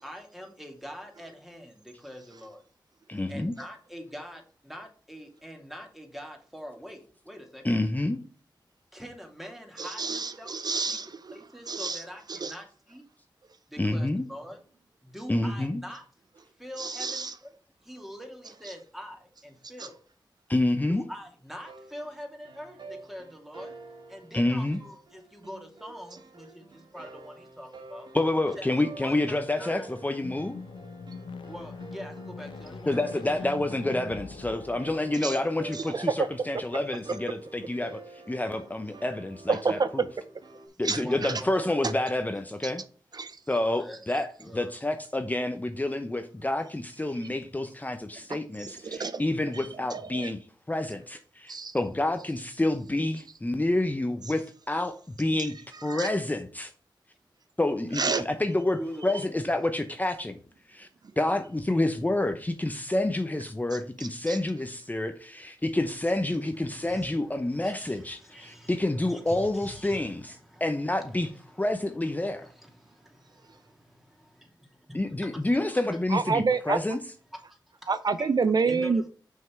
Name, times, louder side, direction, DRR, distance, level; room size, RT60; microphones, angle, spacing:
voice 1, 0.0-2.6 3.3-7.8 8.9-10.5 10.9-11.0 11.3-13.0 13.7-14.6 15.0-16.0 16.6-17.5 17.8-20.0 21.1-23.7 24.1-28.1 28.5-28.7 28.9-29.9 31.5-33.5 40.9-41.8 43.6-44.0 44.4-44.7 58.8-59.4 66.5-71.7 72.2-75.4 75.7-75.8 77.5-77.6 78.2-78.3 78.6-79.1, equal, 5° right, 3 dB, 2.6 m, -44 dB
voice 2, 3.1-3.5 7.6-8.2 13.8-14.3 15.3-15.8 20.5-21.1 24.3-24.8 28.1-30.6 32.9-38.0 38.3-40.0 40.8-42.8 43.5-44.3 44.5-50.4 50.7-55.5 55.8-56.7 57.6-60.4 60.7-60.9 61.2-71.3 71.6-72.5 74.9-77.0, left 1 dB, 20° left, 7 dB, 0.9 m, -28 dB
voice 3, 9.8-11.4 11.7-12.0 12.3-12.5 16.8-17.3 18.6-18.7 19.8-19.9 35.1-35.4 35.7-36.3 39.5-39.9 40.8-41.4 41.8-41.9 42.6-42.7 43.1-43.4 47.2-47.3 48.6-49.2 49.5-50.3 51.5-51.8 55.7-56.1 57.9-58.2 63.7-64.4 76.1-76.8 77.9-79.0, right 4 dB, 55° right, 12 dB, 0.5 m, -29 dB
sound 1, 21.7-40.7, right 3 dB, 75° right, 2.1 m, -48 dB
sound 2, 30.1-35.8, left 4 dB, 85° left, 0.8 m, -43 dB
6.2 x 5.7 x 4.6 m, 0.41 s
cardioid pair, 50°, 8 cm